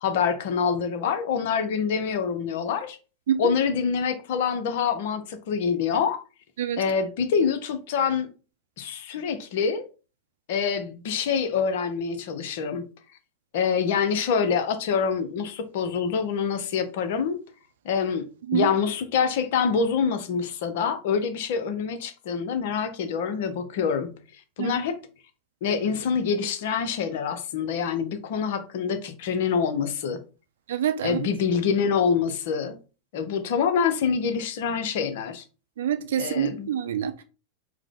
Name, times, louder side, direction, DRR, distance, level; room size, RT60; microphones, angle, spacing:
voice 1, 0.0-3.0 3.4-6.2 6.8-8.3 8.8-9.8 10.5-12.9 13.5-17.4 17.8-24.1 24.6-25.0 25.6-30.2 31.0-32.8 33.1-35.4 36.2-36.7, left 6 dB, 55° left, 0.6 m, -26 dB
voice 2, 30.7-31.2 35.8-37.2, right 9 dB, 60° right, 0.5 m, -26 dB
4.6 x 2.1 x 3.6 m
figure-of-eight pair, 85°, 0 cm